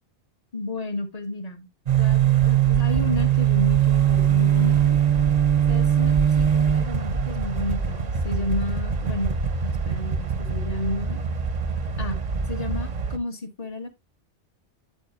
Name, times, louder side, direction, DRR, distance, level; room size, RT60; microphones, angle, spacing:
voice 1, 0.5-1.7 2.0-5.0 5.7-11.2 12.0-12.2 12.5-13.9, left 2 dB, 35° left, 1.5 m, -31 dB
sound 1, 1.9-13.2, right 9 dB, 40° right, 0.8 m, -22 dB
8.9 x 7.8 x 2.5 m
omnidirectional pair, 1.1 m